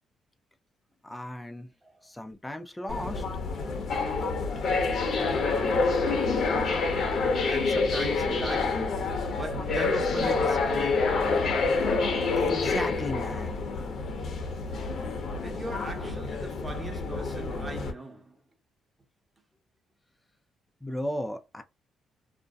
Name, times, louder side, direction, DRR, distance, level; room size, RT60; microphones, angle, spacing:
voice 1, 1.0-1.7 2.0-3.2 12.4-13.6 20.8-21.6, left 1 dB, 10° left, 0.5 m, -35 dB
sound 1, 2.9-17.9, left 4 dB, 60° left, 0.8 m, -27 dB
voice 2, 7.5-11.9 14.4-14.5 15.4-18.4, right 1 dB, 20° right, 0.9 m, -40 dB
2.6 x 2.1 x 2.2 m
cardioid pair, 90°, 0 cm